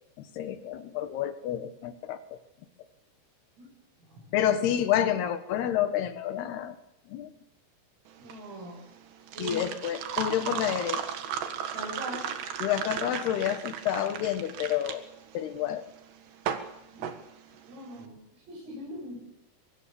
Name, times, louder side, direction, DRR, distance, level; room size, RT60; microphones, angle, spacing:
voice 1, 0.2-2.2 4.3-6.8 7.1-7.3 9.4-11.0 12.6-15.1 15.3-15.9, left 10 dB, 65° left, 9 dB, 2.9 m, -29 dB
sound 1, 8.1-18.0, right 8 dB, 65° right, 3.4 m, -36 dB
voice 2, 8.2-8.8 9.3-9.6 11.7-12.2 16.9-17.0 17.7-18.2 18.5-19.2, equal, 85° right, -1 dB, 10.5 m, -40 dB
24.0 x 24.0 x 7.1 m, 0.87 s
omnidirectional pair, 5.9 m